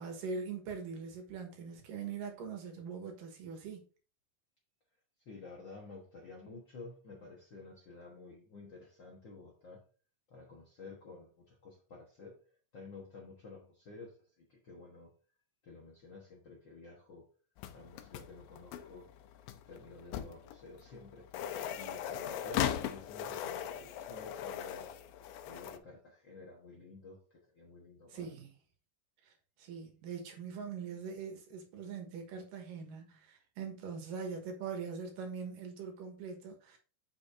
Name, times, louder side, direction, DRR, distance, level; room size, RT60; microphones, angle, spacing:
voice 1, 0.0-3.8 28.1-28.5 29.2-29.3 29.6-36.8, right 5 dB, 80° right, 2.9 m, -42 dB
voice 2, 5.2-9.8 10.3-12.4 12.7-15.1 15.6-17.2 17.7-19.1 19.7-24.9 25.4-28.3, left 3 dB, 55° left, 1.3 m, -51 dB
sound 1, 17.6-25.8, left 10 dB, 90° left, 2.3 m, -39 dB
7.2 x 6.3 x 2.6 m
omnidirectional pair, 3.9 m